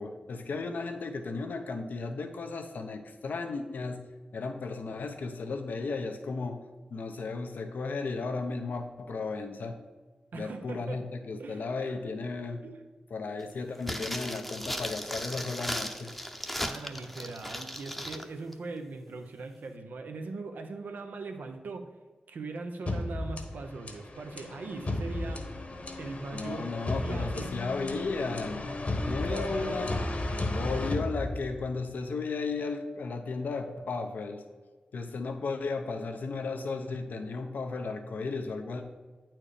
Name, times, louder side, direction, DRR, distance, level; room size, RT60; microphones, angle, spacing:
voice 1, 0.0-4.1 4.3-6.6 6.9-9.8 10.3-12.6 13.1-16.1 26.3-28.7 29.0-29.9 30.5-34.4 34.9-38.8, left 4 dB, 85° left, 5 dB, 0.8 m, -34 dB
voice 2, 10.3-11.0 11.4-11.7 12.6-12.8 16.6-21.9 22.3-25.5 26.0-26.6 27.0-27.7 29.3-29.8, right 3 dB, 85° right, 5 dB, 0.8 m, -40 dB
sound 1, 13.8-18.3 18.5-18.6, equal, 5° left, 0.8 m, -36 dB
sound 2, 22.9-31.8, left 2 dB, 50° left, 1.1 m, -34 dB
8.8 x 4.5 x 5.0 m, 1.4 s
cardioid pair, 45°, 3 cm